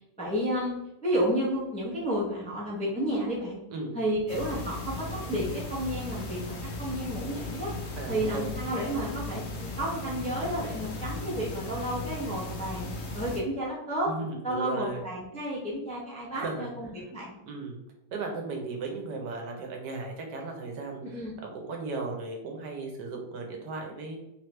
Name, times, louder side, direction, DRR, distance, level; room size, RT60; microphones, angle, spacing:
voice 1, 0.2-0.7 1.0-3.6 3.9-6.4 6.8-7.7 8.1-12.9 13.1-14.1 14.4-17.4 21.0-21.4, equal, 5° left, -5 dB, 0.5 m, -31 dB
sound 1, 4.3-13.4, left 2 dB, 55° left, 0.8 m, -37 dB
voice 2, 8.0-8.5 14.1-15.0 16.3-16.7 17.0-17.1 17.5-17.8 18.1-21.2 21.5-24.2, right 3 dB, 80° right, 2 dB, 1.4 m, -36 dB
3.4 x 3.2 x 3.2 m, 0.88 s
omnidirectional pair, 1.8 m